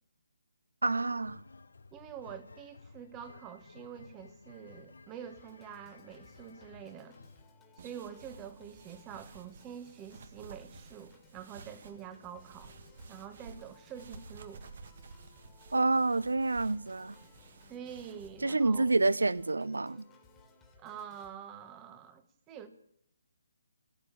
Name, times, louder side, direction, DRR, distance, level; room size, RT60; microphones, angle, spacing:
voice 1, 0.8-1.4 15.7-17.2 18.4-20.0, right 3 dB, 75° right, 0.6 m, -28 dB
sound 1, 1.2-7.5, left 3 dB, 70° left, 1.1 m, -55 dB
voice 2, 1.9-7.2 7.8-12.7 13.1-14.7 17.7-18.9 20.8-22.7, right 8 dB, 20° right, 1.5 m, -46 dB
Organ, 5.4-21.4, left 3 dB, 10° left, 2.2 m, -62 dB
sound 2, 7.8-18.3, right 3 dB, 50° right, 1.9 m, -53 dB
17.0 x 8.5 x 10.0 m
figure-of-eight pair, 145°, 0 cm